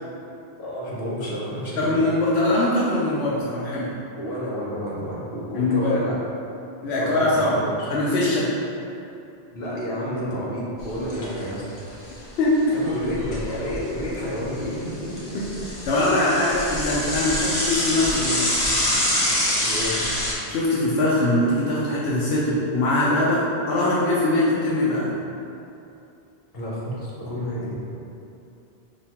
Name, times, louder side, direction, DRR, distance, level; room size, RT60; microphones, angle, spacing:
voice 1, 0.6-1.9 4.1-6.2 6.9-7.9 9.5-11.6 12.7-15.4 19.6-20.0 26.5-27.7, equal, 65° left, -6 dB, 1.0 m, -30 dB
voice 2, 1.8-3.9 5.6-5.9 6.8-7.6 7.9-8.5 12.4-12.8 15.3-15.4 15.9-18.6 20.5-25.2, left 1 dB, 85° left, -7 dB, 0.9 m, -22 dB
Bicycle / Mechanisms, 10.8-11.4 11.8-11.9 12.1-12.2 12.9-14.0 14.4-20.3, left 1 dB, 45° left, 0.7 m, -25 dB
4.9 x 2.2 x 2.9 m, 2.7 s
omnidirectional pair, 1.1 m